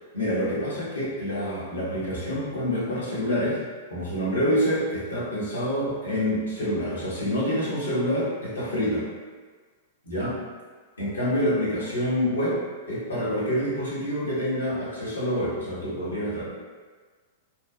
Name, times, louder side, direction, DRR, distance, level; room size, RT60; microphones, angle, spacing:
voice 1, 0.1-3.6 3.9-9.1 10.0-10.3 11.0-16.4, equal, 75° left, -8 dB, 1.1 m, -27 dB
3.0 x 2.5 x 2.3 m, 1.5 s
figure-of-eight pair, 100°, 0 cm